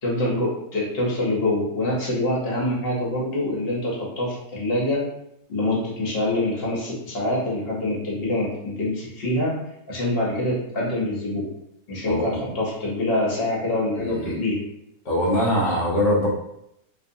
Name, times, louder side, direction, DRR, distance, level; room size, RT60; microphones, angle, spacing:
voice 1, 0.0-5.0 5.5-9.5 9.9-11.5 11.9-14.6, left 1 dB, 50° left, -4 dB, 0.8 m, -25 dB
voice 2, 12.0-12.5 14.0-14.4 15.0-16.3, equal, 70° left, -5 dB, 0.4 m, -23 dB
2.5 x 2.5 x 2.6 m, 0.80 s
omnidirectional pair, 1.8 m